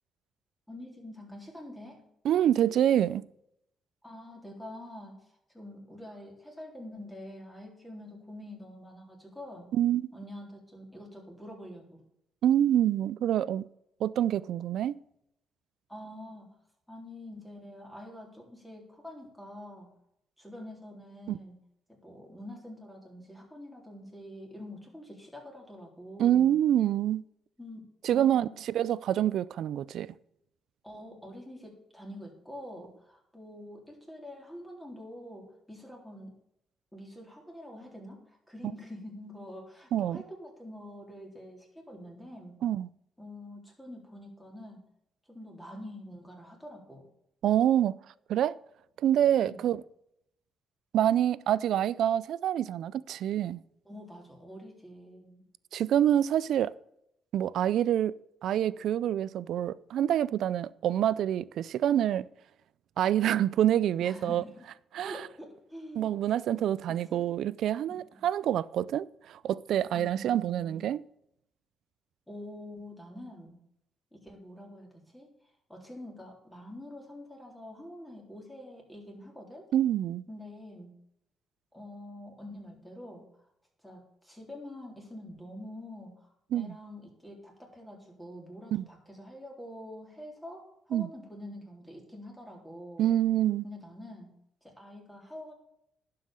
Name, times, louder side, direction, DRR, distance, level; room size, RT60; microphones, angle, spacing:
voice 1, 0.7-2.0 4.0-9.7 10.1-12.0 15.9-16.6 16.9-19.9 20.4-21.6 21.9-26.6 27.6-28.6 30.8-36.4 36.9-42.6 43.2-44.9 45.3-47.1 49.4-49.7 53.9-55.5 64.0-64.7 65.0-66.2 66.8-67.3 67.9-68.2 69.9-70.9 72.3-73.6 74.1-79.7 80.3-80.9 81.7-83.4 83.8-93.1 93.6-94.3 94.6-95.5, left 1 dB, 5° left, 3.7 m, -46 dB
voice 2, 2.2-3.2 9.7-10.1 12.4-13.6 14.0-15.0 21.3-21.4 26.2-27.2 28.0-30.1 39.9-40.2 42.6-42.9 47.4-48.0 48.3-48.6 49.0-49.8 50.9-53.6 55.7-56.7 57.3-58.1 58.4-62.3 63.0-64.4 64.9-65.2 66.0-71.0 79.7-80.2 86.5-86.7 88.7-88.8 90.9-91.1 93.0-93.6, right 11 dB, 75° right, 0.4 m, -26 dB
11.5 x 5.7 x 6.6 m
cardioid pair, 90°, 0 cm